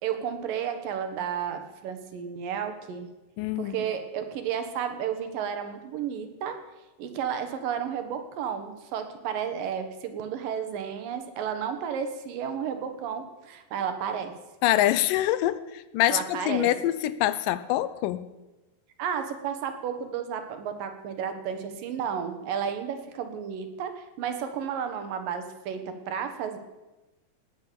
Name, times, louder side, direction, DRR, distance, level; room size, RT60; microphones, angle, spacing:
voice 1, 0.0-3.1 3.6-6.6 7.0-14.3 16.1-16.7 19.0-26.6, right 8 dB, 75° right, 7 dB, 3.0 m, -32 dB
voice 2, 3.4-3.8 14.6-18.3, left 14 dB, 80° left, 14 dB, 2.2 m, -25 dB
19.0 x 9.1 x 6.9 m, 1.1 s
omnidirectional pair, 4.0 m